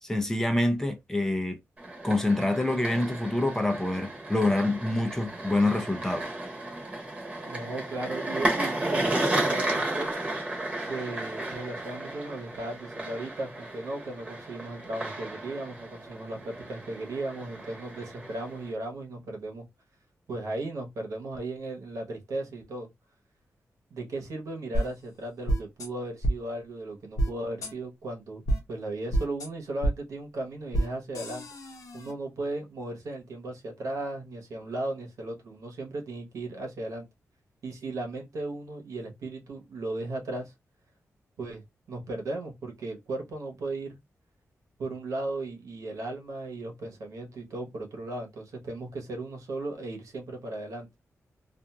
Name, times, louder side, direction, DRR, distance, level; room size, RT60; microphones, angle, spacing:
voice 1, 0.0-1.6 2.0-6.3, left 2 dB, 10° left, 0.6 m, -26 dB
sound 1, 1.8-18.7, right 1 dB, 20° right, 1.1 m, -33 dB
voice 2, 7.4-10.1 10.8-19.6 20.3-22.9 23.9-28.4 28.7-31.4 31.9-37.1 37.6-40.5 41.4-41.6 41.9-44.0 44.8-50.9, right 2 dB, 90° right, 1.0 m, -36 dB
sound 2, 24.7-24.8 25.5-25.9 26.2-26.3 27.2-27.3 27.6-27.7 28.5-28.6 29.1-29.5 29.8-29.9 30.7-30.9 31.1-32.1, right 1 dB, 90° left, 0.9 m, -27 dB
2.8 x 2.5 x 2.3 m
wide cardioid pair, 115°, 5 cm